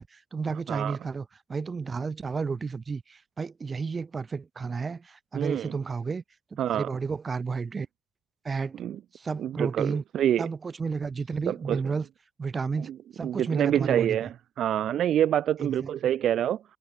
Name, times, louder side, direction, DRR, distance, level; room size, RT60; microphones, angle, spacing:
voice 1, 0.0-6.2 6.7-7.9 8.4-8.8 9.1-10.0 10.4-12.0 12.4-14.2 15.6-15.9, right 5 dB, 35° right, 0.8 m, -32 dB
voice 2, 5.4-5.7 6.6-6.9 8.7-9.0 9.4-10.5 11.5-11.8 12.9-13.0 13.2-16.6, right 10 dB, 70° right, 0.3 m, -26 dB
cardioid pair, 90°, 0 cm